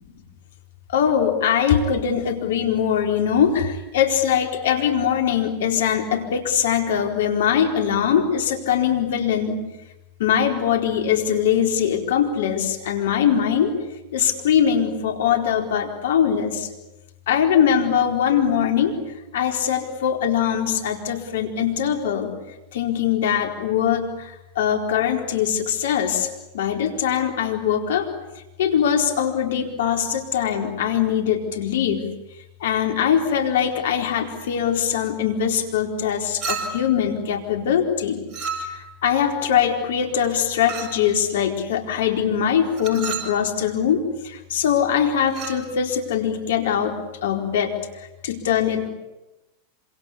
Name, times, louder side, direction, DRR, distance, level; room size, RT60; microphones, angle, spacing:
voice 1, 0.9-9.6 10.2-13.8 14.1-16.7 17.3-19.0 19.3-22.3 22.7-28.1 28.6-32.1 32.6-38.2 38.6-47.0 47.2-48.9, left 8 dB, 70° left, 4 dB, 4.3 m, -22 dB
Chink clink, 36.4-37.0 38.3-39.0 40.7-41.1 42.8-43.4 45.3-45.6, right 4 dB, 35° right, 7.1 m, -31 dB
27.0 x 26.0 x 8.5 m, 0.97 s
hypercardioid pair, 100°, 0 cm